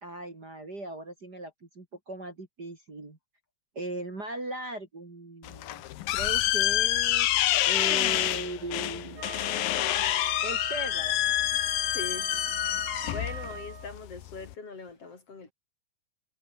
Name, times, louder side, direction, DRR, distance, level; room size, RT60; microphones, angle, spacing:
voice 1, 0.0-3.2 3.8-5.8 6.1-7.3 7.7-9.2 10.4-11.2, right 2 dB, 30° right, 3.7 m, -38 dB
sound 1, 5.5-14.5, left 15 dB, 85° left, 2.8 m, -27 dB
Wind instrument woodwind instrument, 9.1-14.0, right 5 dB, 70° right, 6.1 m, -41 dB
voice 2, 11.8-12.3 13.0-15.5, left 4 dB, 45° left, 5.0 m, -41 dB
omnidirectional pair, 4.0 m